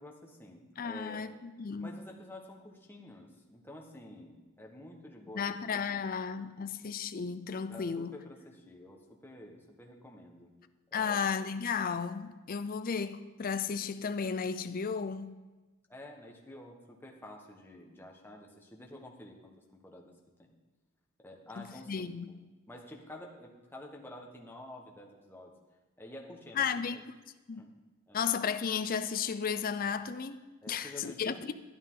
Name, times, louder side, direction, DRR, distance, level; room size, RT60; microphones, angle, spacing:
voice 1, 0.0-1.2 1.8-5.5 5.9-6.0 6.6-6.7 7.7-10.5 10.9-11.2 15.9-19.5 19.8-20.1 20.4-20.5 21.2-22.4 22.7-25.5 26.0-27.0 27.6-27.7 28.1-28.2 30.6-31.5, left 1 dB, 10° left, 1.2 m, -49 dB
voice 2, 0.8-1.9 5.3-8.2 10.9-15.3 21.6-22.4 26.5-27.1 27.5-27.7 28.1-31.5, left 6 dB, 40° left, 0.5 m, -34 dB
12.0 x 10.5 x 3.7 m
head